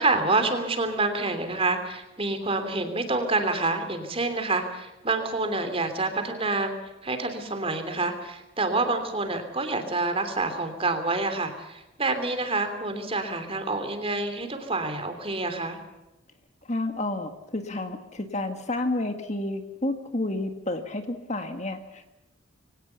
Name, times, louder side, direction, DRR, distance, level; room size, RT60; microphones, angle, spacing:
voice 1, 0.0-6.8 7.0-15.8, right 3 dB, 25° right, 8 dB, 3.1 m, -27 dB
voice 2, 16.6-22.1, left 2 dB, 35° left, 7 dB, 1.7 m, -30 dB
24.0 x 18.0 x 7.0 m, 0.99 s
head